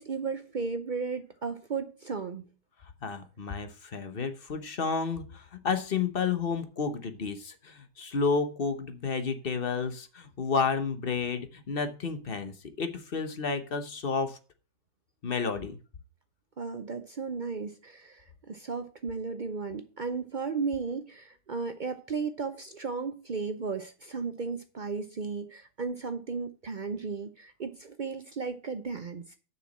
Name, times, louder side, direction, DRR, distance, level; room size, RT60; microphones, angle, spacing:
voice 1, 0.0-2.5 16.6-29.4, right 4 dB, 70° right, 8 dB, 0.4 m, -35 dB
voice 2, 3.0-14.4 15.2-15.8, left 5 dB, 40° left, 9 dB, 1.0 m, -31 dB
7.0 x 5.9 x 7.4 m, 0.36 s
omnidirectional pair, 1.8 m